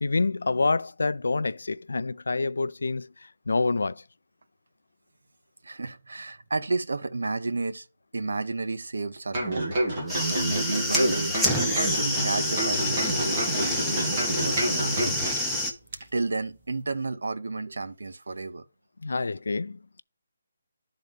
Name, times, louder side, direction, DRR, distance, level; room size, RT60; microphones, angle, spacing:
voice 1, 0.0-4.0 19.0-20.0, left 3 dB, 85° left, 0.3 m, -27 dB
voice 2, 5.6-7.9 8.1-9.7 10.1-14.8 16.1-18.6, right 3 dB, 90° right, 0.7 m, -32 dB
sound 1, 9.3-15.6 15.9-16.0, right 1 dB, 30° right, 2.1 m, -28 dB
sound 2, 10.0-15.7, left 1 dB, ahead, 0.6 m, -28 dB
11.5 x 3.9 x 3.6 m
hypercardioid pair, 175°, 0 cm